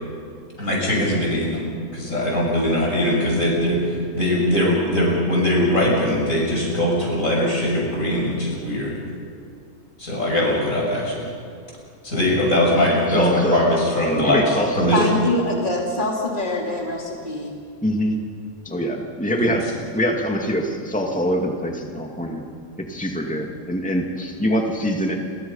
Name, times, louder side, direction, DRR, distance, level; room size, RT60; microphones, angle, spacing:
voice 1, 0.6-1.7 1.9-9.0 10.0-11.3 12.0-14.4 14.8-15.1 19.4-19.5, left 1 dB, 85° left, -2 dB, 7.6 m, -21 dB
voice 2, 13.1-13.6 14.3-15.1 17.8-18.2 18.7-22.4 22.9-25.3, equal, 5° left, 1 dB, 2.2 m, -24 dB
voice 3, 14.9-17.5, left 1 dB, 35° left, -1 dB, 3.3 m, -24 dB
29.5 x 24.0 x 5.6 m, 2.2 s
omnidirectional pair, 1.4 m